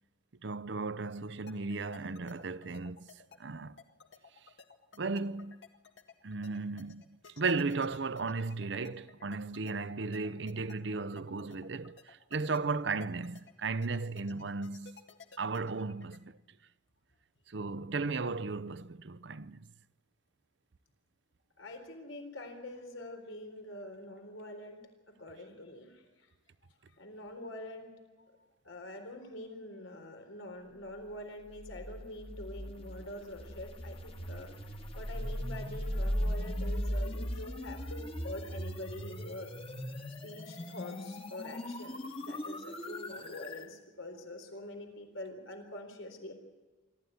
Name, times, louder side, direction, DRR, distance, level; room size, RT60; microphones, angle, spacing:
voice 1, 0.4-3.8 4.9-5.6 6.2-15.0 15.4-16.4 17.5-19.7, right 4 dB, 60° right, 0.7 m, -35 dB
sound 1, 1.5-16.2, left 5 dB, 60° left, 1.8 m, -55 dB
voice 2, 21.6-26.3 27.0-27.9 28.6-34.5 34.9-39.5 40.2-46.3, left 1 dB, 80° left, 4.0 m, -45 dB
sound 2, 31.6-43.7, equal, 30° left, 1.7 m, -38 dB
25.5 x 13.5 x 9.4 m
head